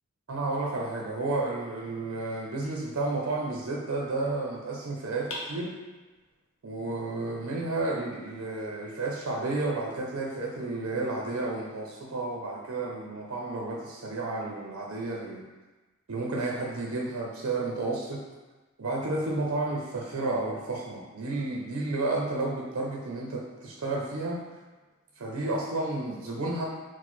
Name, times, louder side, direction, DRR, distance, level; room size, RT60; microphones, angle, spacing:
voice 1, 0.3-5.7 6.6-15.4 16.1-18.2 18.8-24.4 25.2-26.6, right 2 dB, 70° right, -2 dB, 0.5 m, -31 dB
sound 1, 2.6-3.8 5.3-6.3, left 1 dB, 60° left, 0.8 m, -43 dB
4.4 x 2.1 x 4.4 m, 1.2 s
head